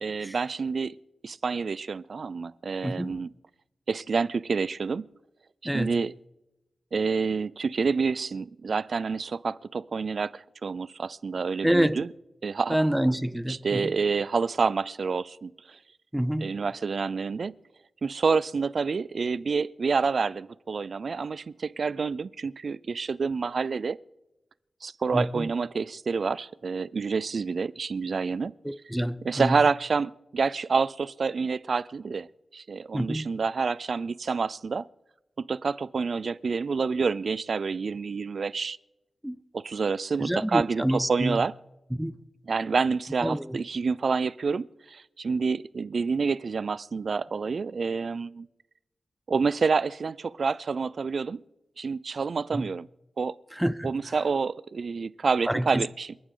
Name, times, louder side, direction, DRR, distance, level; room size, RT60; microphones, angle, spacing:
voice 1, 0.0-1.0 1.2-3.3 3.9-5.1 5.7-6.1 6.9-12.1 12.4-12.8 13.5-15.8 16.4-17.6 18.0-24.0 24.8-28.5 29.2-32.3 32.5-34.8 35.4-38.8 39.5-41.5 42.5-48.5 49.3-51.4 51.8-52.9 53.2-53.3 53.8-56.2, right 5 dB, 65° right, 0.4 m, -28 dB
voice 2, 2.8-3.2 5.6-5.9 11.6-12.0 12.7-14.0 16.1-16.5 25.1-25.5 28.6-29.6 32.9-33.3 39.2-39.4 40.2-41.4 41.9-42.2 43.2-43.6 52.5-52.7 53.5-53.9 55.4-55.8, equal, 5° right, 0.5 m, -27 dB
28.5 x 9.6 x 3.8 m
wide cardioid pair, 85°, 0 cm